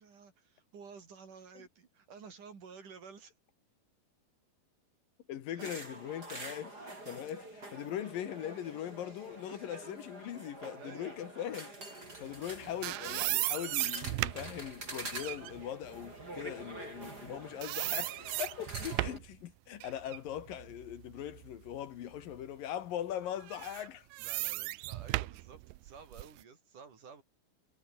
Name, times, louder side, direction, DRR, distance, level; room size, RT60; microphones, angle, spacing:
voice 1, 0.0-3.3 5.5-5.8 9.5-9.9 10.8-11.2 16.3-16.4 21.2-21.3 24.2-27.2, right 5 dB, 60° right, 5.4 m, -52 dB
voice 2, 5.3-24.1, left 11 dB, 70° left, 3.1 m, -41 dB
sound 1, 5.6-19.2, right 2 dB, 25° right, 8.5 m, -46 dB
sound 2, 12.4-17.3 17.6-19.3 19.8-21.8 22.2-22.4 23.4-26.4, right 20 dB, 80° right, 2.3 m, -37 dB
omnidirectional pair, 4.3 m